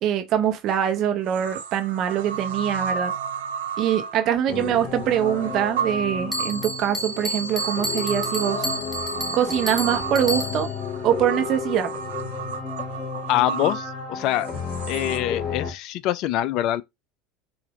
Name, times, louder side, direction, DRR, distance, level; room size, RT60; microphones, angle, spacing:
voice 1, 0.0-3.1 3.8-8.7 9.3-10.7 11.0-11.9, right 10 dB, 50° right, 0.9 m, -23 dB
sound 1, 0.7-0.8 1.3-15.2, right 6 dB, 75° right, 0.5 m, -33 dB
sound 2, 4.5-15.7, left 6 dB, 40° left, 1.7 m, -33 dB
Bell, 6.3-10.8, equal, ahead, 1.0 m, -31 dB
voice 2, 13.3-14.5 14.9-16.8, left 13 dB, 55° left, 0.4 m, -24 dB
4.7 x 2.6 x 3.1 m
hypercardioid pair, 80°, 0 cm